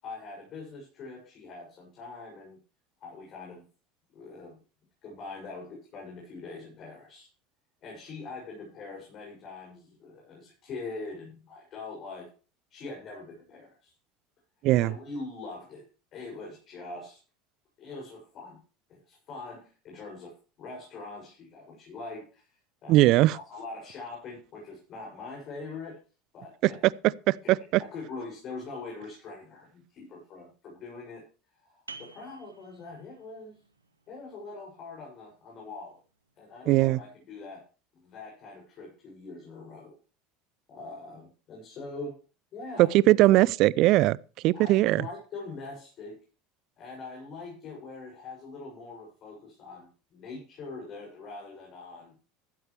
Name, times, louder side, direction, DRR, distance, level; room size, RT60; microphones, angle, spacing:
voice 1, 0.0-2.6 3.0-3.7 4.1-4.6 5.0-7.3 7.8-12.3 12.7-13.9 14.8-15.8 16.1-17.2 17.8-18.6 18.9-23.0 23.3-26.0 26.3-26.9 27.4-27.5 27.8-31.2 31.6-33.6 34.1-36.0 36.4-37.6 37.9-40.0 40.7-42.2 42.5-42.9 43.2-43.4 44.5-46.2 46.8-52.1, left 3 dB, 45° left, 6.9 m, -43 dB
voice 2, 22.9-23.4 27.3-27.6 36.7-37.0 42.8-44.2 44.4-45.0, right 17 dB, 55° right, 0.5 m, -20 dB
sound 1, 31.9-37.2, right 4 dB, 90° right, 1.1 m, -53 dB
14.5 x 12.0 x 3.3 m
figure-of-eight pair, 70°, 0 cm